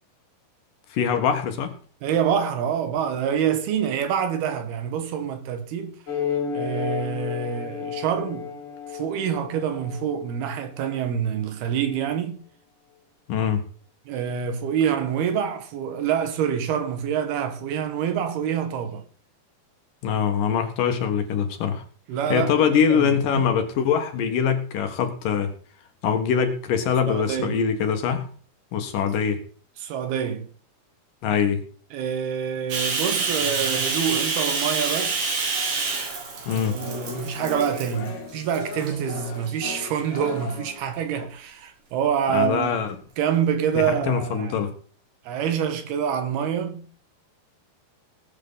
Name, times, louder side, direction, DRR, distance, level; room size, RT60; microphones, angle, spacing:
voice 1, 0.9-1.7 13.3-13.6 20.0-21.8 22.3-25.5 26.0-28.3 28.7-29.4 31.2-31.6 36.5-36.8 42.3-43.0 43.7-44.7, left 7 dB, 65° left, 2.9 m, -23 dB
voice 2, 2.0-6.0 6.5-8.5 8.9-12.4 14.1-19.0 22.1-23.5 27.1-27.6 29.8-30.5 31.9-35.2 36.5-42.8 43.2-44.6 45.3-46.9, right 8 dB, 80° right, 3.4 m, -26 dB
sound 1, 6.1-11.0, left 7 dB, 40° left, 2.1 m, -32 dB
Bathtub (filling or washing), 32.7-38.1 38.5-38.9 39.5-40.3, right 4 dB, 60° right, 4.1 m, -27 dB
sound 2, 34.6-36.1 36.8-41.3, left 5 dB, 85° left, 3.9 m, -38 dB
20.0 x 8.3 x 4.0 m
omnidirectional pair, 4.4 m